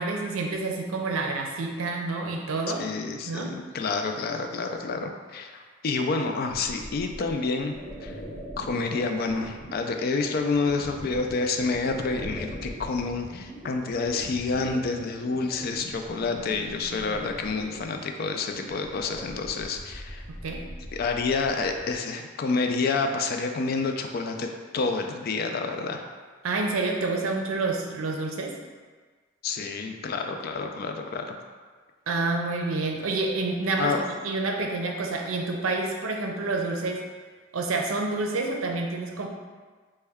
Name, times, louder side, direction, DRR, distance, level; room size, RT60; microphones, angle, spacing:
voice 1, 0.0-2.9 3.3-3.6 20.3-20.7 26.4-28.5 32.1-33.9 34.2-37.0 37.5-39.3, right 3 dB, 90° right, 1 dB, 0.5 m, -28 dB
voice 2, 2.8-7.7 8.0-8.2 8.6-20.2 20.9-24.5 24.7-26.0 29.4-31.3 33.8-34.0, left 4 dB, 50° left, 4 dB, 0.3 m, -28 dB
sound 1, 6.5-22.0, equal, 5° left, 0.7 m, -42 dB
4.2 x 2.2 x 3.4 m, 1.5 s
head